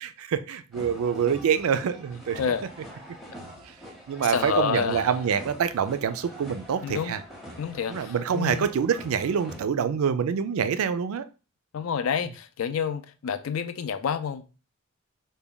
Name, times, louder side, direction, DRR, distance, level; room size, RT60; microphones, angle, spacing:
voice 1, 0.0-2.4 4.1-7.2 7.9-11.2, right 7 dB, 85° right, 0.4 m, -26 dB
sound 1, 0.7-9.6, equal, ahead, 0.6 m, -44 dB
voice 2, 4.3-5.2 6.8-7.2 7.6-8.7 11.7-14.4, left 7 dB, 75° left, 0.4 m, -29 dB
3.3 x 2.2 x 3.8 m
head